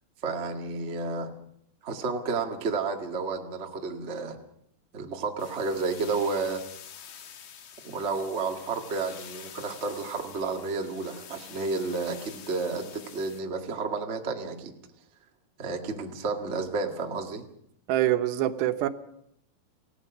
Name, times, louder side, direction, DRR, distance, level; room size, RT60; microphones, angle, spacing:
voice 1, 0.2-1.3 1.8-4.4 4.9-6.6 7.8-14.7 15.6-17.4, right 4 dB, 45° right, 0.8 m, -31 dB
sound 1, 5.4-13.4, left 8 dB, 65° left, 3.2 m, -47 dB
voice 2, 17.9-18.9, right 13 dB, 85° right, 3.2 m, -25 dB
28.5 x 16.5 x 6.1 m
omnidirectional pair, 4.8 m